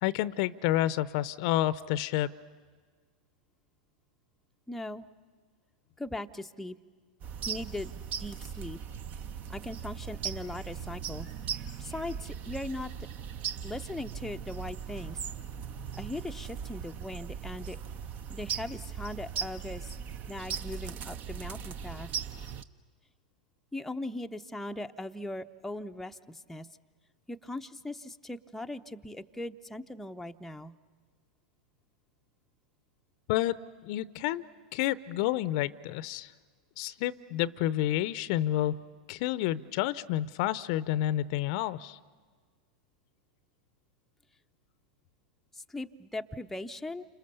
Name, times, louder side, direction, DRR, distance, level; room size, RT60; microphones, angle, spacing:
voice 1, 0.0-2.4 33.3-33.6 33.8-34.4 34.7-36.3 36.8-38.8 39.1-42.0, left 14 dB, 55° left, 18 dB, 0.7 m, -29 dB
voice 2, 4.7-5.1 6.0-6.8 7.5-7.9 8.2-8.8 9.5-11.3 11.8-12.9 13.6-15.3 15.9-17.8 18.3-19.9 20.3-22.1 23.7-26.7 27.3-30.7 45.5-47.1, left 1 dB, 5° left, 5 dB, 0.7 m, -39 dB
sound 1, 7.2-22.6, right 7 dB, 40° right, 0.9 m, -39 dB
29.5 x 27.0 x 6.8 m, 1.5 s
hypercardioid pair, 105°, 4 cm